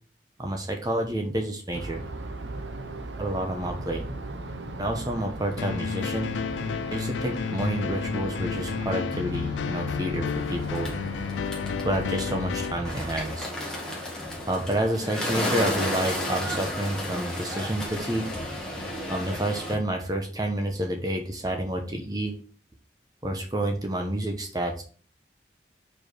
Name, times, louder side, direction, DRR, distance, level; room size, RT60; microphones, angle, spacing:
voice 1, 0.4-2.0 3.2-4.1 4.8-6.3 6.9-10.9 11.8-13.5 14.5-18.3 19.1-22.4 23.2-24.8, right 1 dB, 20° right, 3 dB, 0.9 m, -29 dB
sound 1, 1.7-13.2, right 2 dB, 90° right, 0.9 m, -37 dB
sound 2, 5.6-12.7, left 7 dB, 85° left, 0.3 m, -31 dB
Bird, 10.3-19.7, left 1 dB, 5° left, 1.8 m, -33 dB
5.2 x 4.6 x 6.1 m, 0.41 s
head